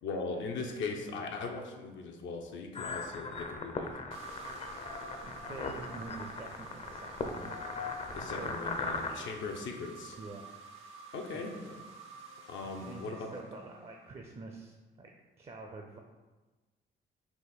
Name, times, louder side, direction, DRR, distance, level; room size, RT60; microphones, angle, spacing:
voice 1, 0.0-4.0 8.1-10.2 11.1-11.7 12.5-13.3, left 4 dB, 75° left, 2 dB, 0.6 m, -39 dB
sound 1, 2.7-9.1, left 3 dB, 35° left, 0.5 m, -39 dB
sound 2, 4.1-14.1, right 4 dB, 80° right, 0.7 m, -50 dB
voice 2, 5.2-8.6 8.9-9.3 10.2-10.5 10.8-10.9 11.3-11.4 12.3-16.0, right 3 dB, 30° right, 2 dB, 0.4 m, -47 dB
4.1 x 2.6 x 3.9 m, 1.2 s
cardioid pair, 90°, 20 cm